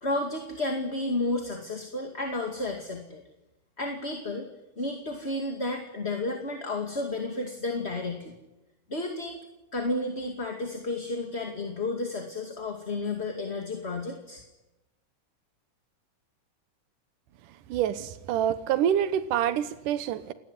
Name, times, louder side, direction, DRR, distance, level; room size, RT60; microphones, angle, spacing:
voice 1, 0.0-3.2 3.8-4.5 4.8-8.3 8.9-9.4 9.7-14.4, left 2 dB, 20° left, 3 dB, 2.2 m, -32 dB
voice 2, 17.7-20.3, right 10 dB, 85° right, 12 dB, 2.7 m, -26 dB
30.0 x 19.5 x 9.8 m, 1.0 s
omnidirectional pair, 3.6 m